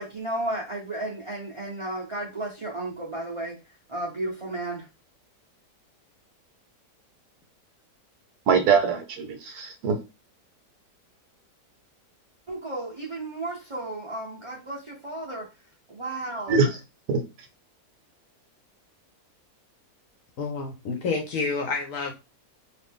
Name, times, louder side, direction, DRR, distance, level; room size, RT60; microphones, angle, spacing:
voice 1, 0.0-3.6 3.9-4.9 12.5-15.5 15.9-16.6, right 2 dB, 45° right, 0.4 m, -33 dB
voice 2, 8.5-10.0 16.5-16.8 17.1-17.2, right 5 dB, 75° right, 1.1 m, -23 dB
voice 3, 20.4-22.1, left 4 dB, 65° left, 0.9 m, -29 dB
2.8 x 2.5 x 3.5 m
omnidirectional pair, 1.8 m